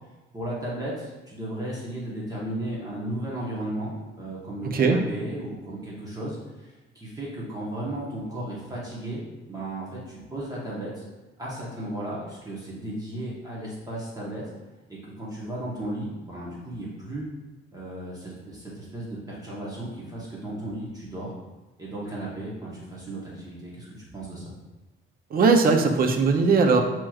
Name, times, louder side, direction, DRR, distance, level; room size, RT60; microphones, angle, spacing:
voice 1, 0.3-9.2 9.5-11.0 11.4-14.4 14.9-17.3 17.7-21.3 21.8-24.5, right 1 dB, 15° right, -6 dB, 1.0 m, -35 dB
voice 2, 4.6-5.0 25.3-26.8, right 4 dB, 45° right, 4 dB, 0.6 m, -19 dB
7.5 x 3.0 x 2.3 m, 1.1 s
cardioid pair, 130°, 21 cm